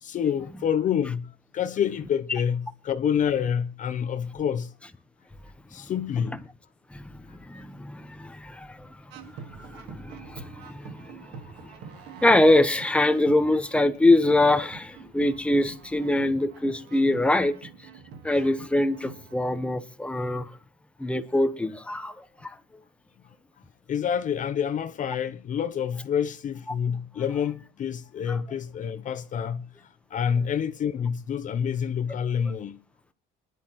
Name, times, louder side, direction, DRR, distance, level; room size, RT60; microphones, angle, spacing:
voice 1, 0.0-4.7 5.7-6.4 23.9-29.7 30.1-32.8, left 8 dB, 50° left, 0.8 m, -27 dB
voice 2, 6.9-8.9 9.6-11.2 11.6-11.7 12.2-17.7 18.2-20.5 21.0-22.2 22.4-22.6 28.3-28.4, left 1 dB, 5° left, 1.2 m, -24 dB
sound 1, 9.1-19.7, right 5 dB, 90° right, 1.9 m, -46 dB
25.5 x 11.0 x 3.1 m
cardioid pair, 110°, 17 cm